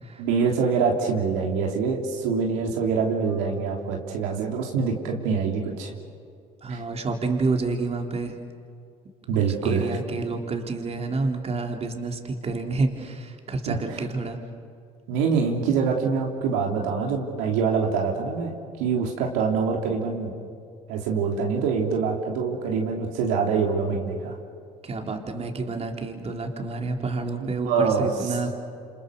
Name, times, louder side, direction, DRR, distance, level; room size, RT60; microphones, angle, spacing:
voice 1, 0.2-5.9 6.7-6.8 9.3-10.0 13.7-13.8 15.1-18.5 18.8-20.3 20.9-24.4 27.6-28.3, right 5 dB, 85° right, 0 dB, 3.3 m, -25 dB
voice 2, 6.6-8.4 9.3-14.4 24.8-28.5, right 3 dB, 35° right, 2 dB, 3.6 m, -29 dB
28.5 x 27.0 x 6.9 m, 2.3 s
supercardioid pair, 70°, 17 cm